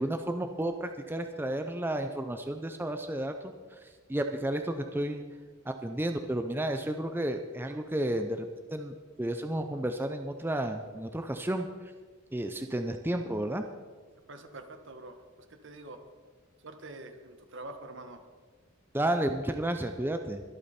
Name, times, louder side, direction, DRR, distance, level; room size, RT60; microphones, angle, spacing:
voice 1, 0.0-3.5 3.8-5.2 5.7-11.7 12.3-13.7 18.9-20.4, right 1 dB, 10° right, 6 dB, 0.5 m, -32 dB
voice 2, 14.3-15.2 15.5-16.0 16.6-18.2, right 2 dB, 60° right, 7 dB, 1.4 m, -45 dB
22.5 x 8.5 x 4.3 m, 1.5 s
head